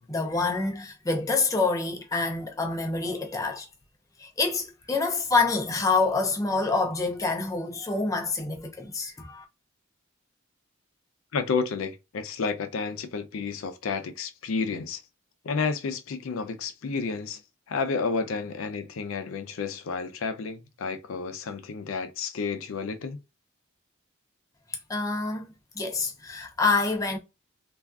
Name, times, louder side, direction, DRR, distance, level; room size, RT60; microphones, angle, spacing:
voice 1, 0.1-3.7 4.2-9.4 24.9-25.4 25.8-27.2, left 3 dB, 15° left, 0.4 m, -27 dB
voice 2, 11.3-15.0 15.4-17.4 17.7-23.2, left 4 dB, 75° left, 0.4 m, -31 dB
3.3 x 2.4 x 2.3 m
head